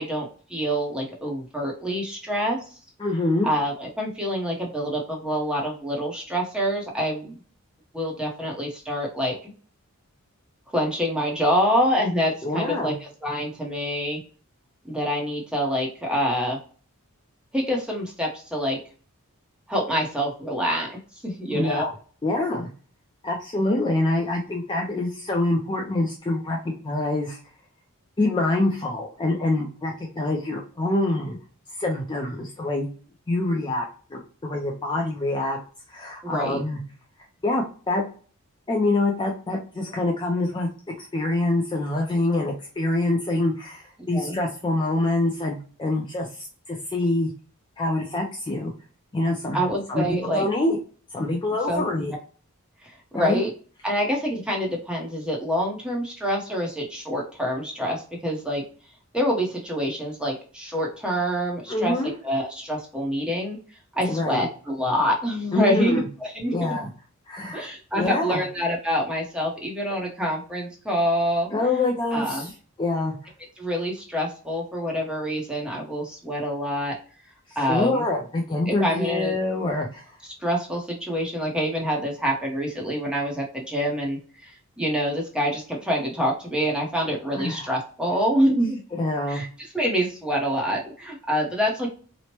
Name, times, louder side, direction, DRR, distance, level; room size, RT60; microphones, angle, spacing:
voice 1, 0.0-2.6 3.4-7.4 7.9-9.5 10.7-12.9 13.2-14.2 14.9-16.6 17.5-18.8 19.7-20.9 21.2-21.9 36.2-36.6 44.1-44.3 49.5-50.5 51.7-52.2 52.8-53.5 53.8-58.6 59.1-61.9 62.2-63.6 63.9-66.5 67.5-71.5 72.1-72.5 73.6-77.0 77.6-78.0 78.7-79.3 80.4-84.5 84.8-88.8 89.3-89.5 89.7-91.9, equal, 5° right, -1 dB, 0.7 m, -26 dB
voice 2, 3.0-3.5 12.4-13.0 21.5-21.9 22.2-22.7 23.2-27.4 28.2-31.4 31.8-32.9 33.3-35.6 35.9-36.8 37.4-38.0 38.7-40.7 41.0-47.3 47.8-48.7 49.1-49.6 49.9-50.8 51.1-52.1 53.1-53.4 61.7-62.1 64.1-64.5 65.5-66.0 66.5-66.9 67.3-68.4 71.5-72.5 72.8-73.1 77.5-80.2 87.4-87.7 88.1-88.2 88.9-89.4, left 2 dB, 20° left, 0 dB, 0.4 m, -25 dB
3.0 x 2.1 x 2.8 m, 0.40 s
head